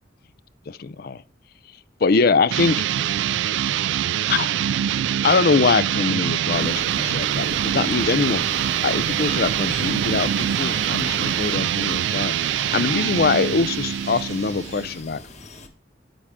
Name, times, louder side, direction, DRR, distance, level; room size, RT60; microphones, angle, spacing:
voice 1, 0.7-1.2 2.0-2.8 4.3-4.5 5.2-15.2, left 4 dB, 55° left, 0.5 m, -23 dB
sound 1, 2.5-15.0, right 10 dB, 80° right, 0.3 m, -24 dB
sound 2, 6.5-11.6, right 4 dB, 55° right, 0.7 m, -34 dB
sound 3, 8.4-15.7, left 4 dB, 40° left, 1.4 m, -40 dB
9.2 x 8.8 x 3.6 m
head